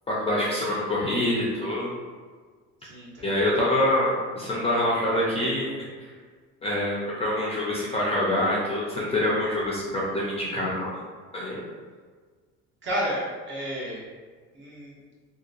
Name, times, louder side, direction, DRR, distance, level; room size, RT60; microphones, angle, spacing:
voice 1, 0.1-1.9 3.2-5.7 6.6-11.0 11.3-11.6, left 1 dB, 20° left, -5 dB, 0.5 m, -25 dB
voice 2, 2.8-3.3 12.8-14.0 14.5-15.0, equal, 35° right, -5 dB, 0.9 m, -31 dB
2.7 x 2.2 x 2.5 m, 1.5 s
supercardioid pair, 100°, 31 cm